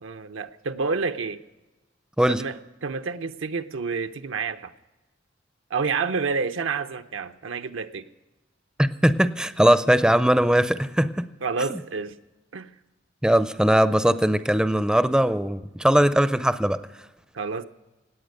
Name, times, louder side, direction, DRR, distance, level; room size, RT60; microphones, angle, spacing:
voice 1, 0.0-1.4 2.3-2.5 2.8-4.7 5.7-8.1 11.4-12.2 12.5-12.7 17.3-17.6, right 4 dB, 85° right, 8 dB, 0.6 m, -29 dB
voice 2, 8.8-11.3 11.7-11.8 13.2-16.8, right 1 dB, 5° right, 12 dB, 0.4 m, -20 dB
17.5 x 9.5 x 6.5 m, 1.1 s
head